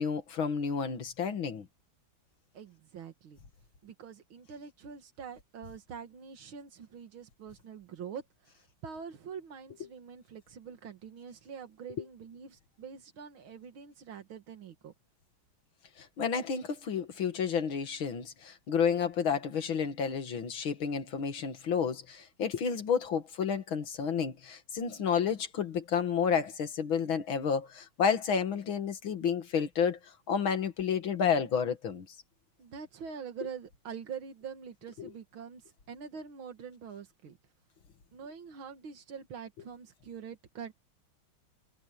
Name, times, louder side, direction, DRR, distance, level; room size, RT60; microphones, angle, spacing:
voice 1, 0.0-1.7 12.0-12.1 16.0-30.0 30.3-32.1 35.0-35.1, left 7 dB, 80° left, 2.6 m, -30 dB
voice 2, 2.5-3.4 3.8-14.9 32.6-37.4 38.1-40.7, right 7 dB, 90° right, 2.4 m, -45 dB
omnidirectional pair, 2.2 m